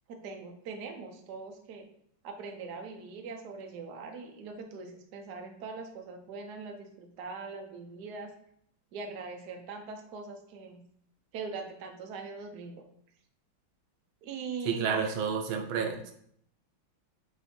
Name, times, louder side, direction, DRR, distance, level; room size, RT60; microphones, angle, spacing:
voice 1, 0.1-1.8 2.2-8.3 8.9-10.8 11.3-12.8 14.2-15.2, right 4 dB, 60° right, 3 dB, 1.2 m, -41 dB
voice 2, 14.7-16.1, right 6 dB, 85° right, 4 dB, 1.5 m, -30 dB
8.0 x 2.7 x 4.3 m, 0.68 s
omnidirectional pair, 2.2 m